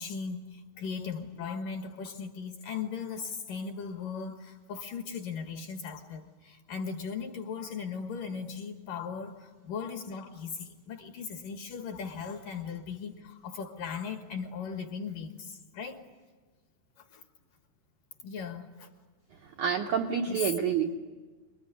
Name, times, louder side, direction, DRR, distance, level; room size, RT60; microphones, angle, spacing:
voice 1, 0.0-16.0 17.0-17.2 18.2-18.9 20.3-20.4, left 6 dB, 60° left, 5 dB, 2.5 m, -38 dB
voice 2, 19.6-20.9, right 7 dB, 75° right, 2 dB, 1.8 m, -28 dB
28.5 x 21.5 x 9.7 m, 1.4 s
omnidirectional pair, 5.0 m